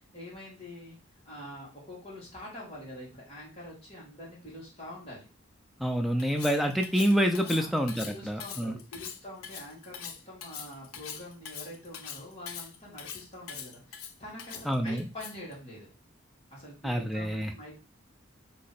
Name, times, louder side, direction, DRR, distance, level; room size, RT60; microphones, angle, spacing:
voice 1, 0.1-1.0 1.3-5.3 7.4-7.7 8.1-15.9 16.5-17.8, left 1 dB, 30° left, -6 dB, 1.8 m, -45 dB
voice 2, 5.8-8.8 14.7-15.0 16.8-17.5, equal, ahead, 3 dB, 0.3 m, -27 dB
Cutlery silverware, 6.2-15.5, left 8 dB, 85° left, 0.5 m, -42 dB
3.1 x 2.9 x 4.0 m, 0.34 s
head